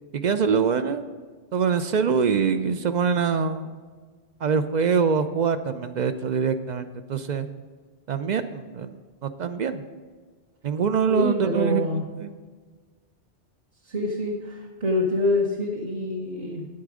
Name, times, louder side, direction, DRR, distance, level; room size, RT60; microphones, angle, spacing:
voice 1, 0.1-1.0 1.5-3.8 4.4-7.5 8.1-9.8 10.6-11.9 12.2-12.3, right 6 dB, 60° right, 10 dB, 0.5 m, -24 dB
voice 2, 11.1-12.0 13.8-16.7, left 1 dB, 40° right, -1 dB, 0.9 m, -26 dB
9.3 x 8.6 x 4.9 m, 1.5 s
omnidirectional pair, 1.2 m